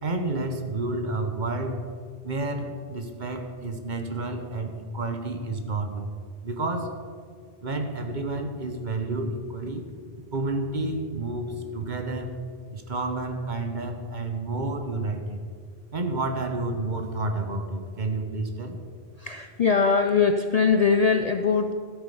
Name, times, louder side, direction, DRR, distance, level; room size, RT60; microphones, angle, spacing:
voice 1, 0.0-1.8 2.2-6.1 6.4-7.0 7.6-9.9 10.3-12.4 12.7-15.4 15.9-18.8, right 2 dB, 45° right, 5 dB, 1.1 m, -30 dB
voice 2, 19.2-21.7, left 5 dB, 50° left, 7 dB, 0.5 m, -21 dB
13.0 x 8.3 x 5.5 m, 2.1 s
omnidirectional pair, 1.1 m